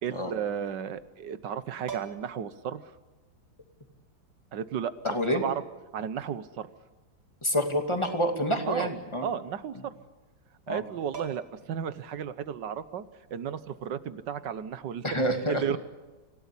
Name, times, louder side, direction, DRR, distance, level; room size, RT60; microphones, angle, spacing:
voice 1, 0.0-2.8 4.5-4.9 5.3-5.6 5.9-6.7 8.7-8.9 9.2-9.9 10.7-13.0 13.3-15.0 15.5-15.8, right 8 dB, 65° right, 13 dB, 1.6 m, -33 dB
sound 1, 1.9-2.4 3.8-3.9 5.0-5.5 8.0-8.5 8.8-8.9 10.7-10.8 11.1-11.7 13.7-13.9, right 7 dB, 85° right, 2.9 m, -42 dB
voice 2, 5.0-5.4 7.4-9.3 10.7-10.8 15.0-15.6, equal, 15° left, 5 dB, 2.4 m, -28 dB
26.5 x 17.0 x 10.0 m, 1.2 s
omnidirectional pair, 2.1 m